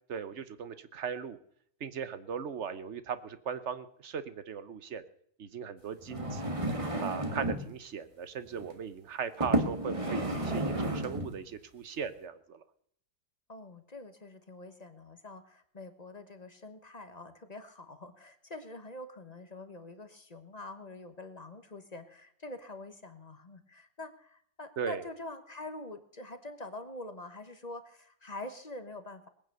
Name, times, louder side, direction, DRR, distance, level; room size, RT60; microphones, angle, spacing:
voice 1, 0.1-1.4 1.8-5.0 5.4-6.6 7.0-12.6 24.8-25.0, right 7 dB, 45° right, 13 dB, 1.1 m, -38 dB
sound 1, 6.0-7.7 8.5-8.7 9.4-11.4 12.0-12.1, right 1 dB, 20° right, 1.7 m, -32 dB
voice 2, 13.5-29.3, left 2 dB, 25° left, 8 dB, 1.0 m, -45 dB
20.0 x 9.4 x 6.7 m, 0.67 s
omnidirectional pair, 1.9 m